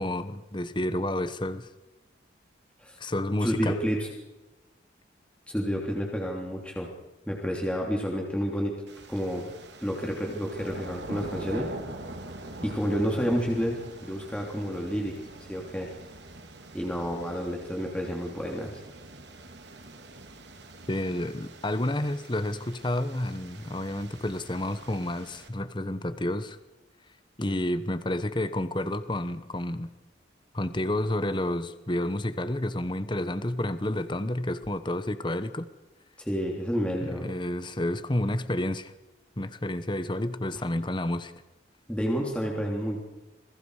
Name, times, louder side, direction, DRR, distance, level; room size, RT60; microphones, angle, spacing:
voice 1, 0.0-1.7 3.0-3.8 20.9-26.6 27.4-29.9 30.5-35.7 37.0-38.9 39.4-41.3, left 1 dB, 25° left, 12 dB, 1.0 m, -30 dB
voice 2, 3.4-4.1 5.5-6.9 7.3-8.8 9.1-9.5 9.8-11.7 12.6-15.1 15.5-15.9 16.7-18.8 36.2-37.3 40.5-40.6 41.9-43.0, equal, 5° left, -1 dB, 3.2 m, -30 dB
sound 1, 8.9-25.5, right 2 dB, 70° right, 2.8 m, -44 dB
27.5 x 21.0 x 4.9 m, 1.1 s
head